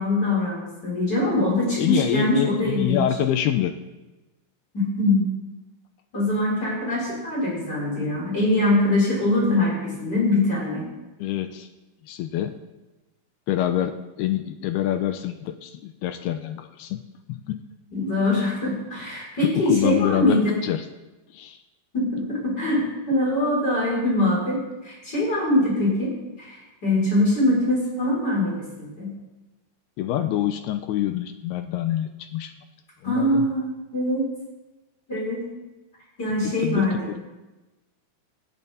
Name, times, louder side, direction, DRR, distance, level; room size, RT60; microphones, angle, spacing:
voice 1, 0.0-3.0 4.7-5.2 6.1-10.8 17.9-20.6 21.9-24.6 24.8-26.1 26.4-29.1 33.0-34.2 35.1-35.6 36.2-37.1, left 1 dB, 20° left, -6 dB, 6.7 m, -23 dB
voice 2, 1.7-3.7 11.2-11.7 12.1-12.6 13.5-17.6 19.4-20.9 21.3-21.6 30.0-32.5 33.0-33.5 36.4-37.2, left 12 dB, 85° left, 8 dB, 2.3 m, -26 dB
19.5 x 14.5 x 4.1 m, 1.1 s
omnidirectional pair, 5.5 m